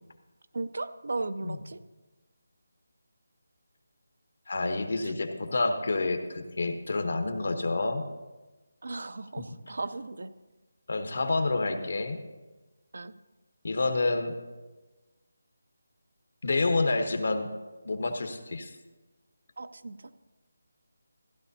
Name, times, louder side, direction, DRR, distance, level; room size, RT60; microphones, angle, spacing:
voice 1, 0.5-1.8 4.6-4.7 5.0-5.1 8.8-10.3 12.9-13.1 19.6-20.0, right 3 dB, 60° right, 12 dB, 0.5 m, -36 dB
voice 2, 4.5-8.1 9.4-9.5 10.9-12.2 13.6-14.3 16.4-17.5 17.8-18.8, left 3 dB, 55° left, 7 dB, 1.1 m, -28 dB
15.0 x 11.0 x 2.7 m, 1.2 s
figure-of-eight pair, 175°, 0 cm